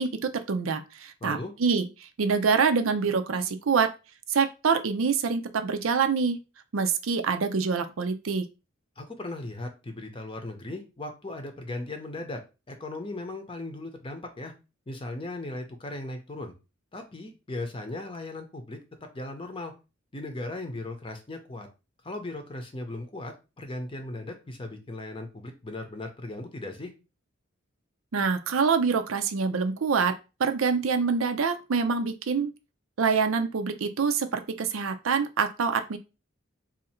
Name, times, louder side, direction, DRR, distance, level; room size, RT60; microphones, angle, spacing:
voice 1, 0.0-3.9 4.3-6.4 6.7-8.4 28.1-30.1 30.4-32.5 33.0-36.0, right 5 dB, 85° right, 8 dB, 0.5 m, -26 dB
voice 2, 1.2-1.5 9.0-12.4 12.7-14.5 14.9-16.5 16.9-18.8 19.1-19.7 20.1-21.7 22.0-26.9, left 2 dB, 25° left, 6 dB, 0.7 m, -37 dB
2.7 x 2.5 x 4.2 m, 0.29 s
head